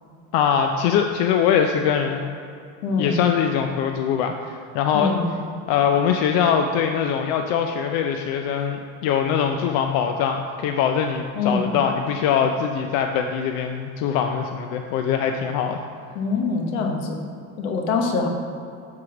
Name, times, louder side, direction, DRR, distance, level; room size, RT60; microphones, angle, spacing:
voice 1, 0.3-2.3 3.0-5.1 5.7-15.8, left 7 dB, 70° left, 4 dB, 0.6 m, -22 dB
voice 2, 2.8-3.1 4.9-5.3 11.3-11.7 16.1-17.2 17.6-18.3, left 4 dB, 90° left, 3 dB, 1.1 m, -24 dB
7.7 x 3.8 x 5.8 m, 2.4 s
supercardioid pair, 110°, 39 cm